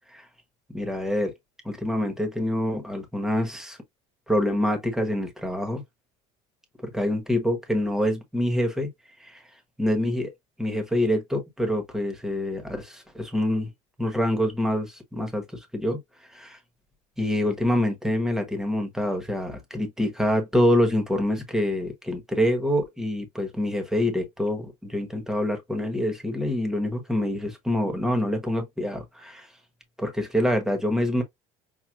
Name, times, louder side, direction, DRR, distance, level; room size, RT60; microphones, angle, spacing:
voice 1, 0.7-1.3 1.6-3.8 4.3-5.8 6.8-8.9 9.2-9.4 9.8-10.3 10.6-13.7 14.0-16.0 16.3-16.6 17.2-29.5 30.0-31.2, left 1 dB, 5° right, 1.2 m, -26 dB
6.1 x 2.4 x 2.4 m
cardioid pair, 145°, 13 cm